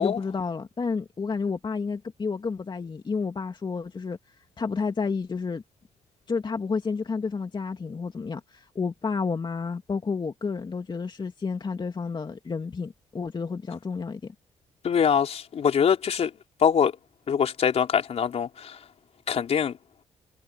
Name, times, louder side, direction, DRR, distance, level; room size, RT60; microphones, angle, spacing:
voice 1, 0.0-5.6 6.3-14.3, left 5 dB, 40° left, 2.5 m, -30 dB
voice 2, 14.8-16.3 16.6-16.9 17.3-18.8 19.3-19.8, left 7 dB, 60° left, 4.1 m, -23 dB
supercardioid pair, 55°, 12 cm